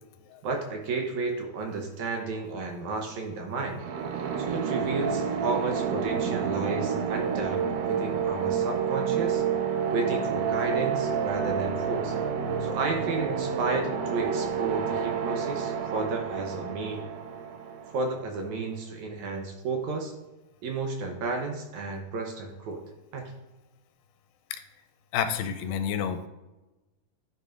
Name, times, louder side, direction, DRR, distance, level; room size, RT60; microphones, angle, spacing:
voice 1, 0.4-3.8 4.4-9.4 9.9-12.2 12.6-17.0 17.9-20.1 20.6-22.8 23.1-23.3, right 3 dB, 75° right, 3 dB, 1.9 m, -32 dB
sound 1, 3.8-18.5, right 7 dB, 90° right, 2.6 m, -29 dB
voice 2, 25.1-26.3, left 8 dB, 80° left, 8 dB, 2.2 m, -29 dB
11.5 x 5.3 x 2.5 m, 1.1 s
omnidirectional pair, 4.1 m